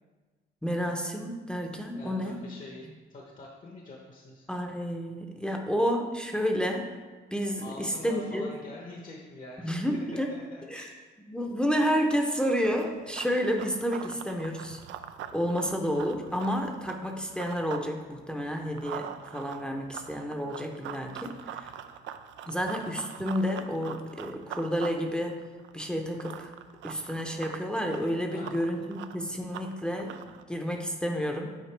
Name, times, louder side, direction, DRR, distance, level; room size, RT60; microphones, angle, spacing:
voice 1, 0.6-2.4 4.5-6.9 7.3-8.5 9.6-10.4 10.7-10.9 11.3-14.8 15.3-21.7 22.5-25.4 25.7-26.5 26.8-30.2 30.5-31.5, equal, 5° left, 2 dB, 0.7 m, -30 dB
voice 2, 2.0-4.5 7.6-11.0 22.5-22.7 28.3-28.6, left 2 dB, 45° left, -1 dB, 1.0 m, -45 dB
Run, 12.4-17.9 18.2-30.4, right 9 dB, 75° right, 0.4 m, -43 dB
9.0 x 4.3 x 3.3 m, 1.4 s
cardioid pair, 90°, 20 cm